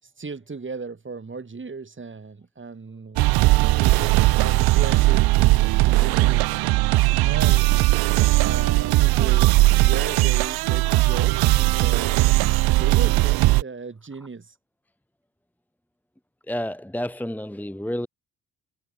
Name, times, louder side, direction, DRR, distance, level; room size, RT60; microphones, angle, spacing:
voice 1, 0.0-3.3 3.8-6.6 7.1-9.5 9.8-12.3 12.8-14.6, right 4 dB, 30° right, 5.6 m, -36 dB
sound 1, 3.2-13.6, right 20 dB, 65° right, 0.8 m, -19 dB
voice 2, 16.5-18.1, equal, 5° left, 1.4 m, -30 dB
hypercardioid pair, 50°, 40 cm